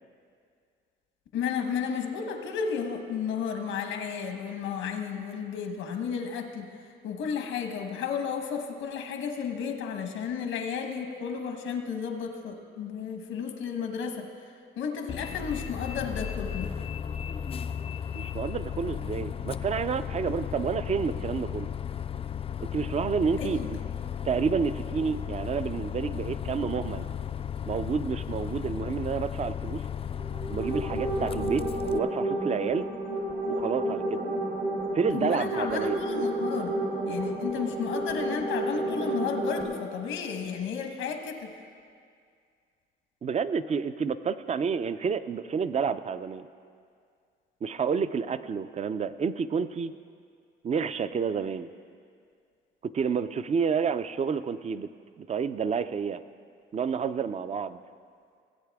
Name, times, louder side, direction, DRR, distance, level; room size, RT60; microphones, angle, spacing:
voice 1, 1.3-14.3 14.8-16.7 23.4-23.7 35.1-36.7 37.0-41.5, left 6 dB, 90° left, 5 dB, 1.2 m, -33 dB
Bus, 15.1-32.0, left 8 dB, 30° left, 0.3 m, -35 dB
voice 2, 18.1-21.7 22.6-23.8 24.2-27.1 27.7-29.8 30.5-31.6 31.9-32.9 33.5-34.2 34.9-36.0 43.2-46.5 47.6-49.9 50.6-51.7 52.8-54.9 55.2-56.2 56.7-57.8, right 6 dB, 35° right, 13 dB, 0.4 m, -29 dB
sound 1, 30.2-39.6, right 1 dB, 70° right, 2.6 m, -31 dB
18.5 x 8.1 x 3.5 m, 2.2 s
cardioid pair, 90°, 20 cm